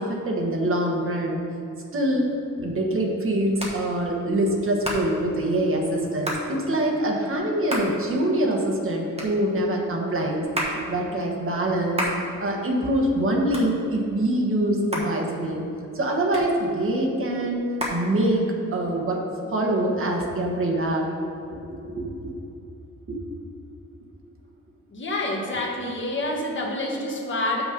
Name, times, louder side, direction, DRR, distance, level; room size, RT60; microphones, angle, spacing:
voice 1, 0.0-1.4 1.9-12.0 12.4-15.6 15.9-17.6 17.9-18.4 18.7-19.2 19.5-21.1 21.7-22.3 23.1-23.2, right 1 dB, 45° right, 0 dB, 1.2 m, -24 dB
Hands, 2.1-18.8, equal, 20° right, 1.2 m, -35 dB
voice 2, 24.9-27.6, left 1 dB, 40° left, -1 dB, 1.3 m, -27 dB
7.1 x 6.2 x 5.2 m, 2.8 s
wide cardioid pair, 160°, 31 cm